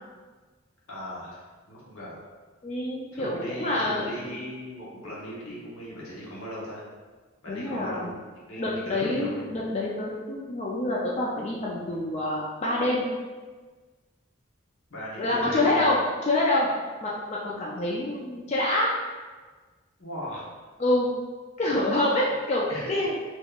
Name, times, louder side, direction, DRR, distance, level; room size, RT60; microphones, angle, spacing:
voice 1, 0.9-1.4 1.7-2.2 3.1-6.8 7.4-8.1 8.5-9.5 14.9-15.9 20.0-20.5 22.7-22.9, equal, 80° left, -7 dB, 1.1 m, -38 dB
voice 2, 2.6-4.3 7.5-8.2 8.6-13.0 15.2-16.7 17.0-18.9 20.8-21.1 21.6-23.2, left 1 dB, 30° left, -4 dB, 0.3 m, -26 dB
3.6 x 2.9 x 2.4 m, 1.4 s
head